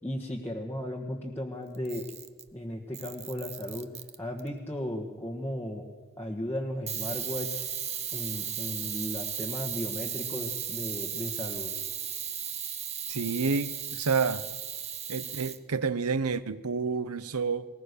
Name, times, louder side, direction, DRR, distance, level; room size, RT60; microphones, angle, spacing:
voice 1, 0.0-2.1 2.5-3.9 4.2-5.8 6.2-7.7 8.1-11.7, left 1 dB, 10° left, -1 dB, 1.5 m, -35 dB
Camera, 1.7-2.5 2.9-4.5 6.9-15.6, right 9 dB, 30° right, 0.9 m, -36 dB
voice 2, 13.1-14.4 15.1-17.7, right 5 dB, 75° right, 15 dB, 0.8 m, -29 dB
20.0 x 19.5 x 6.8 m, 1.4 s
head